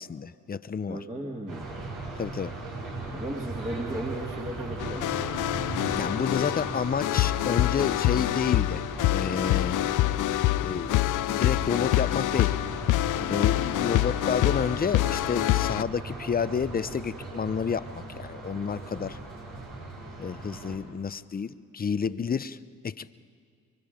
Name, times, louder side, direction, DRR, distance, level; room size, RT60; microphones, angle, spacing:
voice 1, 0.0-1.0 2.2-2.5 5.9-8.8 9.1-9.8 10.6-10.9 11.3-12.5 13.2-19.2 20.2-22.6 22.8-23.1, left 6 dB, 25° left, 15 dB, 0.7 m, -30 dB
voice 2, 0.9-1.8 3.1-5.4, right 1 dB, 15° right, -1 dB, 2.1 m, -36 dB
sound 1, 1.5-20.8, right 2 dB, 75° right, 5.6 m, -38 dB
sound 2, 4.8-15.8, left 16 dB, 65° left, 0.5 m, -26 dB
24.5 x 23.5 x 5.2 m, 2.2 s
cardioid pair, 75°, 33 cm